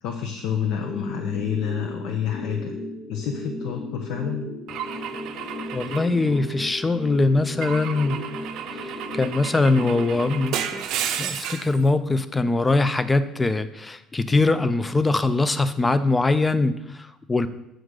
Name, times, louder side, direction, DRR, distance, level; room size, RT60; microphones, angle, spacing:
voice 1, 0.0-2.7 3.1-4.4, left 8 dB, 65° left, 3 dB, 0.7 m, -28 dB
sound 1, 0.8-10.8, left 2 dB, 40° left, 1.0 m, -36 dB
Car / Engine / Glass, 4.7-6.9 7.6-11.8, right 9 dB, 55° right, 0.5 m, -33 dB
voice 2, 5.7-8.2 8.8-10.8 11.1-17.5, left 3 dB, 10° left, 13 dB, 0.3 m, -22 dB
7.9 x 3.7 x 6.3 m, 0.85 s
cardioid pair, 180°, 0 cm